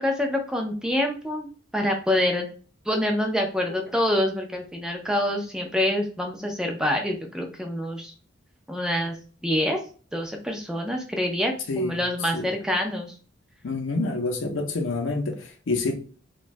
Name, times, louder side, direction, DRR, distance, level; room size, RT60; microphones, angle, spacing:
voice 1, 0.0-2.5 2.9-8.1 8.7-9.2 9.4-9.8 10.1-13.1, left 1 dB, 5° right, 0.4 m, -26 dB
voice 2, 11.7-12.5 13.6-15.9, left 3 dB, 85° left, 0.6 m, -28 dB
3.1 x 2.2 x 2.5 m
head